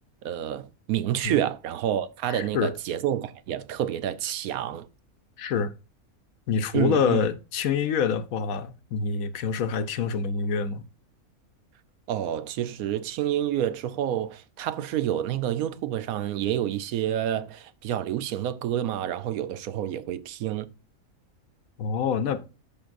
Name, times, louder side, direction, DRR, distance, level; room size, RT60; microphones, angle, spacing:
voice 1, 0.2-4.9 6.7-7.2 12.1-20.7, right 11 dB, 85° right, 1.1 m, -28 dB
voice 2, 2.3-2.7 5.4-5.7 6.5-10.8 21.8-22.4, left 6 dB, 80° left, 1.2 m, -26 dB
13.0 x 5.2 x 2.5 m
omnidirectional pair, 1.5 m